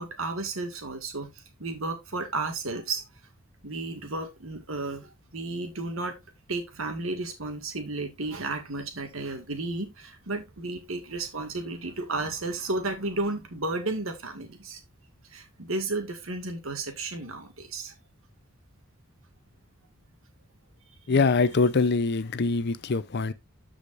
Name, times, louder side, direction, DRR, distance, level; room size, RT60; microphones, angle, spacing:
voice 1, 0.0-3.0 3.6-6.2 6.5-14.8 15.3-17.9, right 2 dB, 75° right, 1.9 m, -33 dB
voice 2, 21.1-23.3, left 4 dB, 55° left, 0.6 m, -23 dB
13.0 x 5.0 x 2.5 m
head